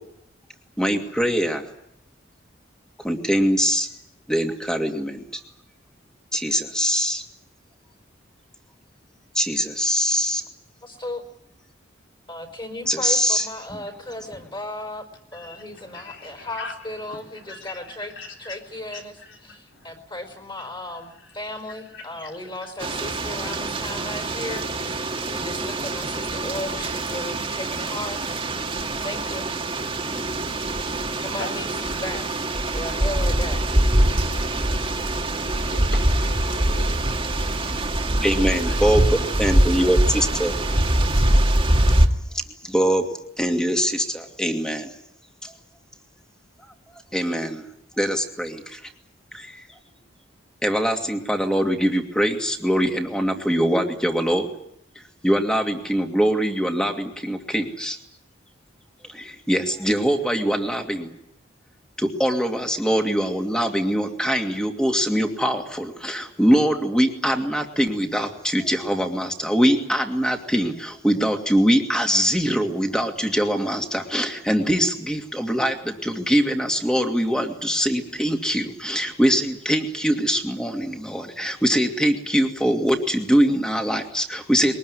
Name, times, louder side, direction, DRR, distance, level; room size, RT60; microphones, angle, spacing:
voice 1, 0.8-1.7 3.0-3.9 4.3-5.4 6.3-7.2 9.3-10.4 12.9-13.5 38.2-40.5 42.6-43.1 43.4-44.9 45.4-45.5 47.1-47.6 48.0-48.8 49.3-49.6 50.6-54.5 55.2-58.0 59.1-61.1 62.0-84.7, equal, 5° left, 2.6 m, -23 dB
voice 2, 10.8-11.2 12.3-15.0 15.3-18.1 18.4-19.2 19.4-28.3 29.0-29.5 31.2-33.8, left 1 dB, 25° left, 4.7 m, -35 dB
voice 3, 15.3-19.9 20.6-20.9 21.2-22.9 33.9-37.5 37.7-38.8 40.2-40.3 40.9-41.0, left 3 dB, 75° left, 3.9 m, -43 dB
sound 1, 22.8-42.1, right 1 dB, 30° right, 2.0 m, -23 dB
22.5 x 20.0 x 9.8 m
head